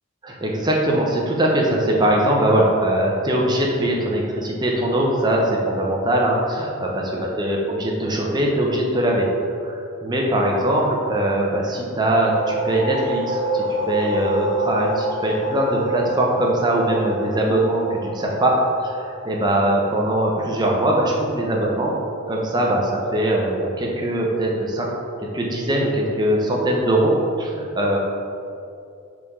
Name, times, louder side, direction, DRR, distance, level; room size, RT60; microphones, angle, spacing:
voice 1, 0.2-21.9 22.3-24.9 25.3-27.1 27.4-28.0, right 1 dB, 20° right, -2 dB, 0.7 m, -21 dB
sound 1, 11.9-21.3, right 1 dB, 20° left, 1.0 m, -28 dB
5.3 x 5.0 x 3.6 m, 2.5 s
head